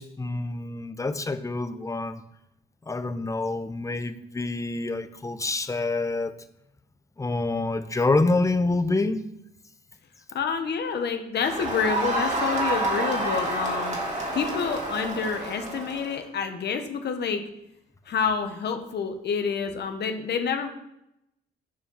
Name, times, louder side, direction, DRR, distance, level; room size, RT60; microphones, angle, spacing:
voice 1, 0.0-2.2 2.9-6.3 7.2-9.2, left 2 dB, 15° left, 10 dB, 0.7 m, -27 dB
voice 2, 10.3-14.0 14.3-17.5 18.1-20.7, left 6 dB, 60° left, 6 dB, 1.1 m, -28 dB
Crowd, 11.4-16.2, right 1 dB, 35° right, 2.4 m, -28 dB
8.7 x 4.6 x 5.5 m, 0.83 s
cardioid pair, 90°, 20 cm